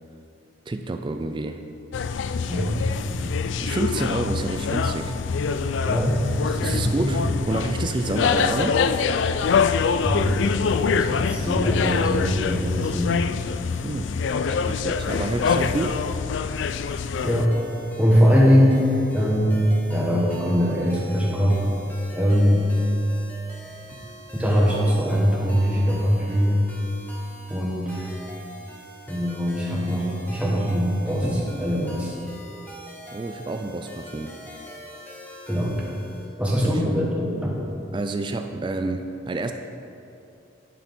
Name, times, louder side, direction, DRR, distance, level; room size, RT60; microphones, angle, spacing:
voice 1, 0.7-1.6 3.2-5.2 6.4-8.8 13.8-14.1 14.5-16.0 33.1-34.3 36.6-36.9 37.9-39.5, right 2 dB, 25° right, 7 dB, 0.3 m, -29 dB
sound 1, 1.9-17.5, left 5 dB, 65° left, 0.3 m, -25 dB
voice 2, 5.8-6.3 6.6-7.3 10.0-10.5 10.9-13.1 17.2-17.6 18.0-18.8 19.1-19.6 19.9-21.7 22.1-22.6 24.3-26.6 27.5-28.1 29.1-32.1 35.5-35.8 36.4-37.6, equal, 5° right, -4 dB, 1.4 m, -22 dB
sound 2, 17.1-36.3, right 1 dB, 10° left, 1.0 m, -43 dB
11.0 x 4.9 x 5.4 m, 2.7 s
head